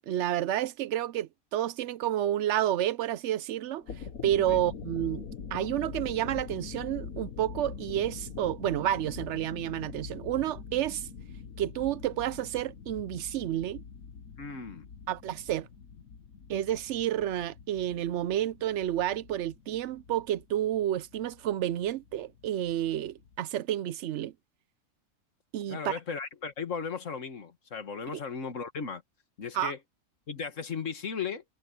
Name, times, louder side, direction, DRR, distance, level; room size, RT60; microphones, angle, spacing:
voice 1, 0.1-3.8 4.2-5.2 5.5-11.1 11.6-13.8 15.1-15.7 16.5-24.3 25.5-25.9 29.5-29.7, right 12 dB, 65° right, 0.8 m, -30 dB
sound 1, 3.7-23.4, left 6 dB, 85° left, 1.7 m, -44 dB
voice 2, 14.4-14.9 25.7-29.0 29.4-29.8 30.3-31.4, left 5 dB, 65° left, 1.9 m, -36 dB
open air
omnidirectional pair, 1.4 m